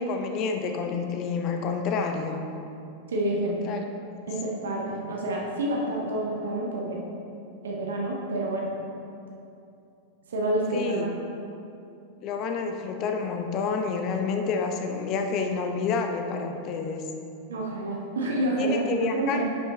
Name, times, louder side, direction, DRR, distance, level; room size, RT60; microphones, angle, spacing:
voice 1, 0.0-2.5 3.3-3.8 10.7-11.1 12.2-17.0 18.6-19.4, left 5 dB, 40° left, 5 dB, 0.7 m, -29 dB
voice 2, 3.1-3.5 4.3-7.0 7.6-8.7 10.3-11.1 17.5-19.4, right 1 dB, 65° right, -2 dB, 1.1 m, -28 dB
10.0 x 5.6 x 3.1 m, 2.6 s
figure-of-eight pair, 90°, 0 cm